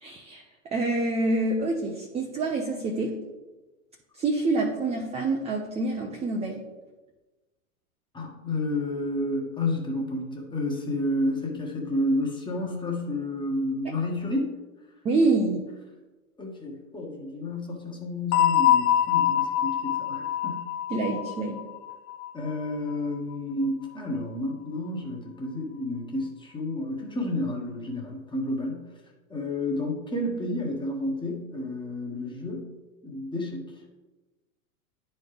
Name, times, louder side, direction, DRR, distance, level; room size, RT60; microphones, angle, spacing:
voice 1, 0.0-0.4 0.7-3.2 4.1-6.7 15.0-15.6 20.9-21.6, right 2 dB, 15° right, 1 dB, 0.5 m, -26 dB
voice 2, 8.1-14.5 16.4-20.7 22.3-28.9 29.3-32.7 33.0-33.8, left 1 dB, 10° left, 0 dB, 1.3 m, -30 dB
sound 1, 18.3-22.9, left 11 dB, 35° left, 0.7 m, -25 dB
10.0 x 4.3 x 3.4 m, 1.2 s
hypercardioid pair, 120°, 43 cm